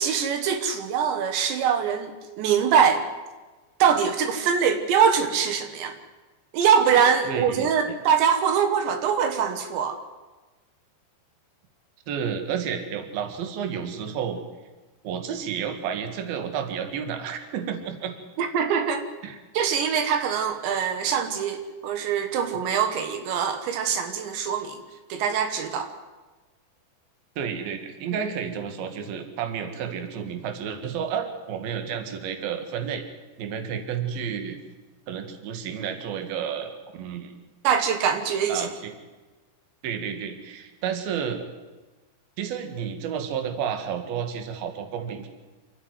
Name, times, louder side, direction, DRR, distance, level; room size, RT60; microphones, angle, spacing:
voice 1, 0.0-3.0 3.8-5.9 6.5-10.0 18.4-19.1 19.6-24.8 25.1-25.9 37.6-38.7, right 7 dB, 85° right, 7 dB, 3.6 m, -23 dB
voice 2, 7.2-7.7 12.1-14.4 15.0-18.1 19.2-19.4 27.4-33.0 33.4-34.6 35.1-37.3 38.5-38.9 39.8-41.5 42.4-45.3, right 7 dB, 65° right, 6 dB, 3.3 m, -31 dB
28.0 x 9.8 x 9.5 m, 1.2 s
omnidirectional pair, 5.1 m